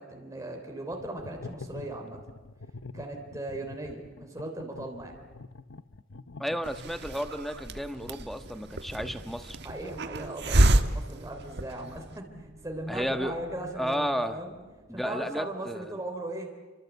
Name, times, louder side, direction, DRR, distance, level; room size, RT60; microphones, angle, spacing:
voice 1, 0.0-2.2 2.9-5.2 9.6-14.6 14.9-16.5, right 1 dB, 15° right, 2 dB, 3.3 m, -38 dB
sound 1, 0.9-7.0, left 3 dB, 85° left, 1.0 m, -45 dB
voice 2, 6.4-9.6 12.9-13.4 13.8-14.4 14.9-16.0, equal, ahead, 9 dB, 1.3 m, -32 dB
Hiss, 6.6-12.1, right 1 dB, 60° right, 1.3 m, -28 dB
sound 2, 7.5-15.7, right 1 dB, 35° right, 1.9 m, -52 dB
28.5 x 25.0 x 8.3 m, 1.3 s
head